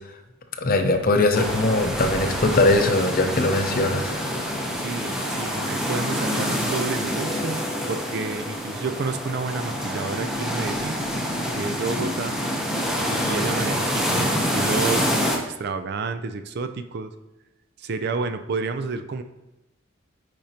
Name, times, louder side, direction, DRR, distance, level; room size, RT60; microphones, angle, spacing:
voice 1, 0.6-4.2, left 2 dB, 45° left, 6 dB, 0.6 m, -21 dB
sound 1, 1.3-15.4, equal, 5° right, 0.7 m, -26 dB
voice 2, 4.8-11.0 11.5-12.4 13.0-17.1 17.8-19.2, right 4 dB, 50° right, 9 dB, 0.4 m, -30 dB
sound 2, 7.2-13.1, left 3 dB, 20° left, 1.0 m, -43 dB
8.8 x 5.1 x 2.8 m, 0.97 s
head